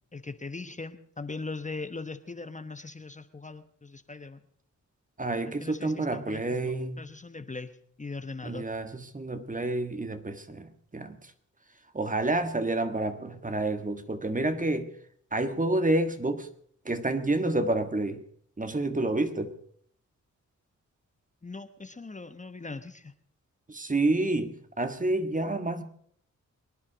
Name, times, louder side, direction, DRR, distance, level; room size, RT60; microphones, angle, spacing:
voice 1, 0.1-4.4 5.4-7.7 8.0-8.6 21.4-23.1, left 3 dB, 25° left, 1.1 m, -40 dB
voice 2, 5.2-7.0 8.4-11.2 11.9-14.9 15.3-16.5 16.8-18.2 18.6-19.5 23.7-25.8, right 2 dB, 25° right, 1.6 m, -29 dB
23.5 x 9.8 x 5.1 m
cardioid pair, 75°, 31 cm